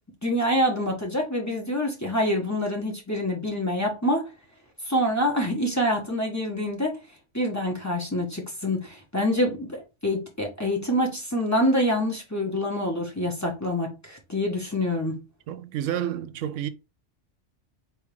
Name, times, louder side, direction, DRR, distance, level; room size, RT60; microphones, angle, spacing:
voice 1, 0.2-4.3 4.9-6.9 7.3-15.2, equal, 15° left, 1.2 m, -26 dB
voice 2, 15.5-16.7, right 11 dB, 90° right, 0.9 m, -30 dB
4.5 x 3.4 x 3.3 m
omnidirectional pair, 1.2 m